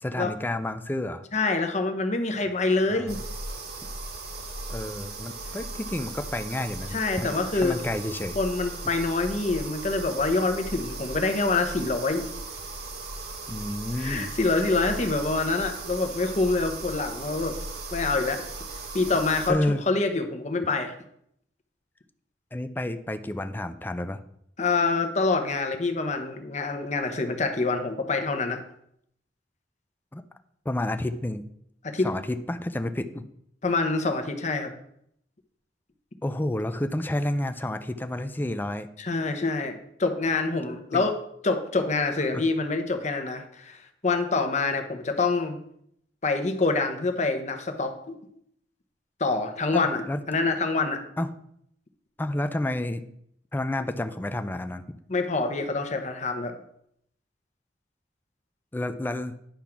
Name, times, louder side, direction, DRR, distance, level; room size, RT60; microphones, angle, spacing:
voice 1, 0.0-1.2 2.9-3.2 4.7-8.4 13.5-14.3 19.5-19.8 22.5-24.2 30.1-30.2 30.7-31.4 32.0-33.3 36.2-38.9 40.9-41.0 42.3-42.4 49.7-50.2 51.2-51.3 52.2-53.0 53.5-55.0 58.7-59.3, left 1 dB, 10° left, 9 dB, 0.4 m, -30 dB
voice 2, 1.3-3.2 6.9-7.8 8.4-12.3 14.0-17.6 17.9-18.4 18.9-19.6 19.9-20.9 24.6-28.6 31.9-32.1 33.6-34.7 39.0-41.2 41.4-43.8 44.0-45.6 46.2-48.2 49.2-51.0 55.1-56.5, left 3 dB, 40° left, 6 dB, 0.9 m, -26 dB
sound 1, 3.1-19.5, right 2 dB, 60° right, 1.5 m, -37 dB
10.0 x 3.7 x 5.8 m, 0.72 s
head